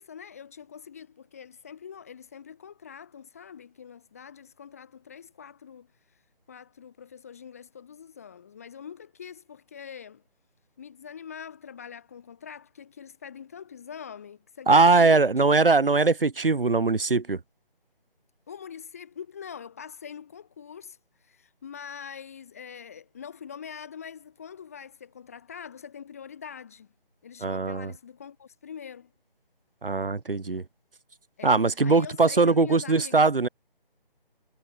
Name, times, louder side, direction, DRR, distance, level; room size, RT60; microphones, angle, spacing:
voice 1, 0.0-6.2 6.5-10.2 10.8-15.6 18.5-26.9 27.2-29.1 31.4-31.5 31.8-33.3, left 7 dB, 15° left, 1.5 m, -44 dB
voice 2, 14.7-17.4 27.4-27.9 29.8-30.6 31.4-33.5, right 3 dB, 65° right, 1.2 m, -21 dB
figure-of-eight pair, 160°, 29 cm